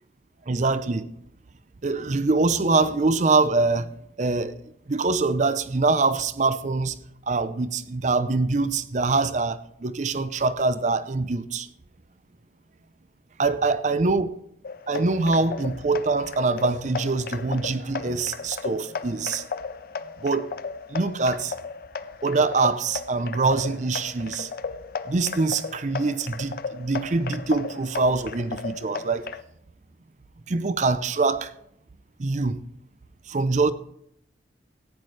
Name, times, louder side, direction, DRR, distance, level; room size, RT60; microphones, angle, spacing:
voice 1, 0.5-1.1 1.8-4.6 4.9-7.0 7.3-11.7 13.4-14.3 14.9-19.4 20.2-20.5 20.9-21.5 22.2-24.5 25.1-29.3 30.5-31.5 32.2-32.6 33.3-33.7, right 3 dB, 40° right, 0.5 m, -24 dB
sound 1, 14.6-29.4, left 5 dB, 50° left, 0.5 m, -35 dB
15.0 x 9.5 x 3.2 m
head